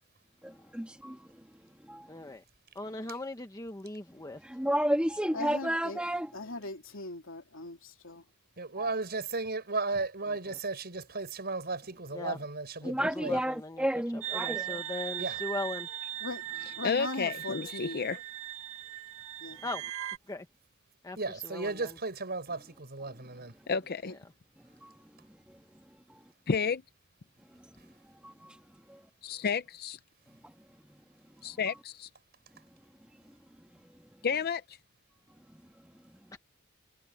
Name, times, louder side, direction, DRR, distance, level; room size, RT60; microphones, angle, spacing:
voice 1, 0.4-1.2 1.9-2.1 4.4-6.3 8.8-8.9 12.8-14.8 24.8-24.9 26.1-26.2 28.2-28.6 28.9-29.0 30.4-30.5, equal, 5° right, 1.6 m, -31 dB
voice 2, 2.1-2.4 2.7-4.4 10.3-10.6 12.1-12.4 12.8-13.9 14.1-15.9 19.6-19.8 20.3-20.4 21.0-22.0 36.3-36.4, left 2 dB, 15° left, 1.2 m, -39 dB
voice 3, 5.3-6.0 6.3-8.2 16.2-16.4 16.8-18.0 19.4-19.6 24.0-24.2, left 2 dB, 65° left, 3.5 m, -39 dB
voice 4, 8.6-13.4 15.2-15.4 21.2-23.5, right 3 dB, 50° right, 5.7 m, -35 dB
sound 1, 14.2-20.2, right 12 dB, 70° right, 1.9 m, -39 dB
voice 5, 16.8-18.2 23.7-24.1 26.5-26.8 29.2-30.0 31.4-32.1 34.2-34.6, left 6 dB, 45° left, 0.6 m, -31 dB
head